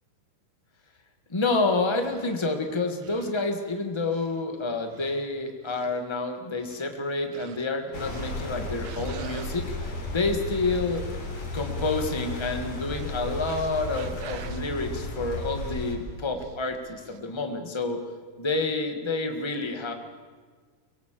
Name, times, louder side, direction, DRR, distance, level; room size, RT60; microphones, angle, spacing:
voice 1, 1.3-11.0 11.5-18.0 18.4-19.9, left 3 dB, 20° left, 5 dB, 0.7 m, -29 dB
sound 1, 2.0-2.4 3.0-3.4 4.0-4.5 4.9-5.2 5.6-6.0 6.6-6.9 7.3-7.7 8.0-8.6 8.8-9.6 12.6-14.6 15.7-15.9 16.4-16.6 17.0-17.2, right 10 dB, 65° right, 2.0 m, -46 dB
sound 2, 7.9-16.0, left 2 dB, 60° left, 4.8 m, -34 dB
24.0 x 17.5 x 7.6 m, 1.5 s
omnidirectional pair, 3.6 m